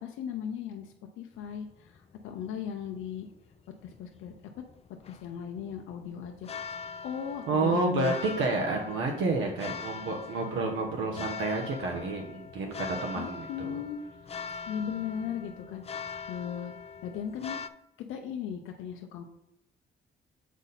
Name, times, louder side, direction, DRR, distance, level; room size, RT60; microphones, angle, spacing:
voice 1, 0.0-3.3 3.8-4.6 5.1-8.2 13.1-14.0 14.7-16.7 17.0-17.6 18.1-19.2, left 8 dB, 85° left, 3 dB, 0.6 m, -37 dB
sound 1, 1.4-17.7, left 5 dB, 30° left, 0.4 m, -42 dB
voice 2, 7.5-13.8, right 3 dB, 80° right, 0 dB, 1.0 m, -30 dB
7.2 x 4.1 x 4.0 m, 0.83 s
cardioid pair, 90°, 20 cm